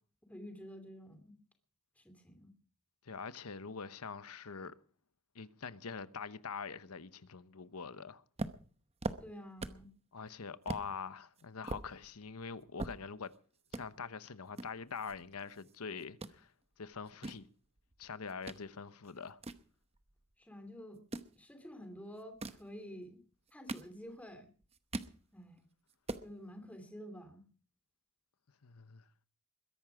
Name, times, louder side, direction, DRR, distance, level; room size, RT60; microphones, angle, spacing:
voice 1, 0.3-1.3 2.0-2.5 9.2-9.9 20.4-21.0 21.4-23.2 23.5-24.5 25.3-25.6 26.2-27.4, equal, 5° left, 2.8 m, -50 dB
voice 2, 3.0-4.7 5.3-8.2 10.1-13.3 13.7-16.5 16.8-17.4 18.0-19.4 28.6-29.0, left 5 dB, 80° left, 1.0 m, -44 dB
sound 1, 8.4-9.9 10.3-10.4 10.7-10.9 11.4-13.4 13.7-13.8 14.6-15.7 16.0-16.4 16.9-18.6 19.0-20.3 20.9-21.3 22.2-22.7 23.3-24.3 24.6-25.2 25.6-25.7 25.9-26.3, right 2 dB, 30° right, 0.9 m, -42 dB
21.5 x 11.0 x 5.0 m
head